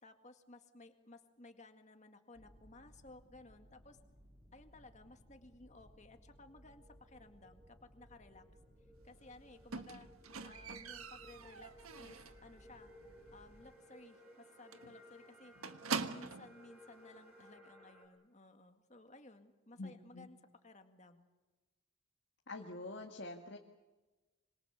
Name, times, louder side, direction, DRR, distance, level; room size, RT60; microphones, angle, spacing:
voice 1, 0.0-4.0 4.5-8.5 9.0-10.1 10.4-12.9 13.3-15.5 16.1-20.4 20.6-21.3, left 2 dB, 35° left, 6 dB, 1.9 m, -58 dB
sound 1, 2.3-13.7, equal, 25° right, 3.2 m, -63 dB
sound 2, 6.3-18.1, equal, ahead, 5.3 m, -61 dB
Squeak, 9.7-12.5 12.8-13.2 13.5-13.6 14.0-14.1 14.3-14.5 14.7-16.6 17.4-17.5, right 5 dB, 85° right, 1.4 m, -43 dB
voice 2, 19.8-20.3 22.5-23.6, left 2 dB, 55° left, 1 dB, 2.0 m, -46 dB
26.0 x 25.5 x 7.1 m, 1.2 s
head